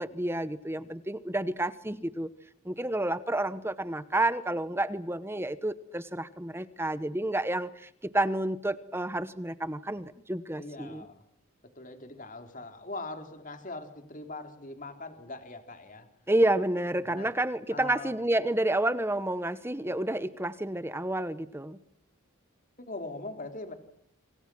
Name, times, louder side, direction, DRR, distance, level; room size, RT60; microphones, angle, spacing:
voice 1, 0.0-2.3 2.6-11.1 16.3-21.8, right 1 dB, 10° right, 14 dB, 1.0 m, -30 dB
voice 2, 10.6-11.2 11.7-16.1 17.0-17.3 17.7-18.2 22.9-23.7, left 2 dB, 35° left, 6 dB, 3.4 m, -41 dB
28.5 x 26.5 x 6.2 m, 0.71 s
head